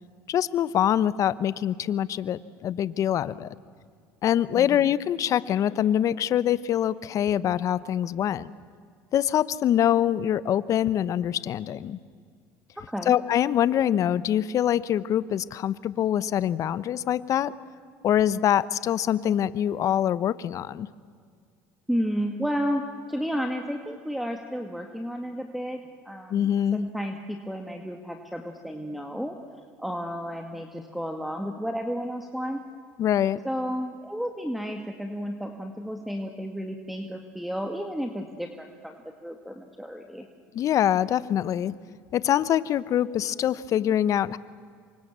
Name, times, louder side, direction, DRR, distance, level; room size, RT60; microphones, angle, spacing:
voice 1, 0.3-3.5 4.2-8.5 9.1-12.0 13.1-17.5 18.0-20.9 26.3-26.8 33.0-33.4 40.5-41.7 42.1-44.4, left 10 dB, 50° left, 17 dB, 1.0 m, -24 dB
voice 2, 4.5-4.9 12.8-13.1 21.9-29.4 29.8-32.6 33.4-38.9 39.2-40.3, equal, ahead, 4 dB, 2.2 m, -32 dB
27.5 x 24.5 x 7.5 m, 2.1 s
supercardioid pair, 85°, 7 cm